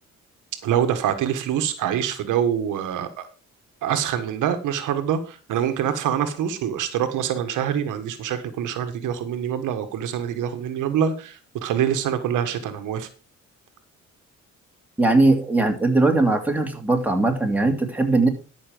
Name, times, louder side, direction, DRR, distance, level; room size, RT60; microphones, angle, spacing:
voice 1, 0.6-3.3 3.8-13.1, right 9 dB, 85° right, 8 dB, 1.5 m, -25 dB
voice 2, 15.0-18.3, right 2 dB, 5° right, 2 dB, 2.9 m, -20 dB
13.0 x 6.2 x 5.1 m, 0.36 s
cardioid pair, 90°, 30 cm